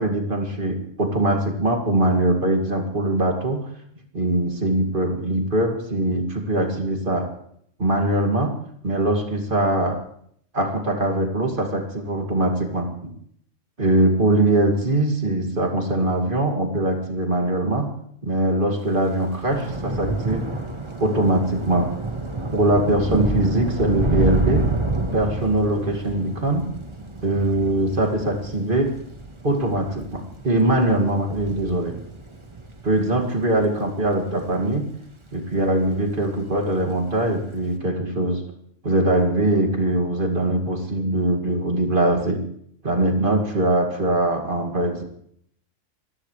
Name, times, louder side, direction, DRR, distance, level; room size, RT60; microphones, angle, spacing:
voice 1, 0.0-3.7 4.1-7.3 7.8-8.6 8.8-10.0 10.5-13.1 13.8-18.0 18.2-20.5 21.0-22.0 22.5-24.7 25.1-26.7 27.2-29.0 29.4-32.0 32.8-34.9 35.3-38.4 38.8-42.4 42.8-45.0, right 1 dB, 45° right, 3 dB, 2.6 m, -22 dB
Thunder / Rain, 18.9-35.5 35.8-36.3 36.5-36.7, right 2 dB, 25° right, 1.4 m, -29 dB
26.0 x 15.5 x 3.3 m, 0.66 s
omnidirectional pair, 1.3 m